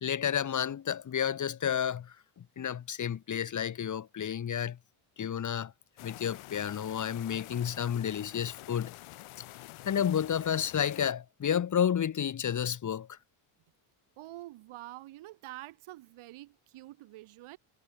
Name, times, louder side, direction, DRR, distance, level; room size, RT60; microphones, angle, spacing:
voice 1, 0.0-4.8 5.2-5.7 6.0-8.9 9.9-13.2, left 8 dB, 35° left, 1.8 m, -31 dB
sound 1, 6.0-11.1, left 17 dB, 85° left, 5.3 m, -48 dB
voice 2, 14.2-17.6, right 17 dB, 80° right, 6.2 m, -47 dB
cardioid pair, 135°, 48 cm